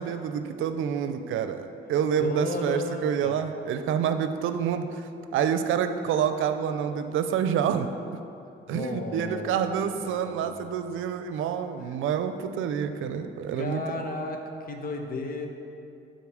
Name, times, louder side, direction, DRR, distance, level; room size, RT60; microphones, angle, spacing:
voice 1, 0.0-7.9 8.7-14.0, right 8 dB, 80° right, 9 dB, 0.5 m, -28 dB
voice 2, 2.2-3.4 8.7-10.7 13.5-15.5, left 3 dB, 45° left, 4 dB, 1.0 m, -34 dB
9.5 x 4.1 x 6.2 m, 2.6 s
cardioid pair, 90°, 20 cm